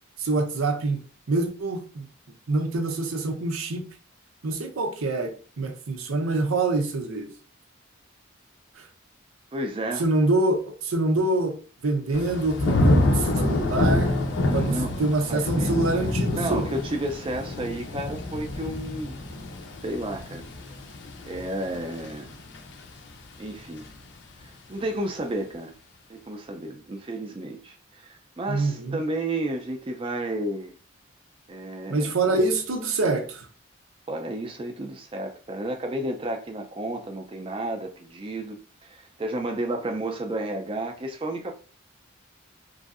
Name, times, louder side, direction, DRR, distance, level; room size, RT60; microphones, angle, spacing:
voice 1, 0.2-1.0 1.3-2.0 2.5-3.8 4.4-7.3 10.0-11.6 11.8-14.2 14.5-16.7 28.5-29.0 31.9-33.5, right 2 dB, 90° right, 0.6 m, -25 dB
voice 2, 9.5-10.1 14.5-14.9 15.3-15.8 16.3-19.2 19.8-20.4 21.2-22.3 23.4-23.9 24.4-25.7 26.1-30.7 31.5-32.1 34.1-41.6, right 1 dB, 25° right, 0.4 m, -32 dB
Thunder / Rain, 12.1-23.1 23.5-24.0, left 2 dB, 55° left, 0.5 m, -27 dB
3.0 x 2.6 x 2.4 m
head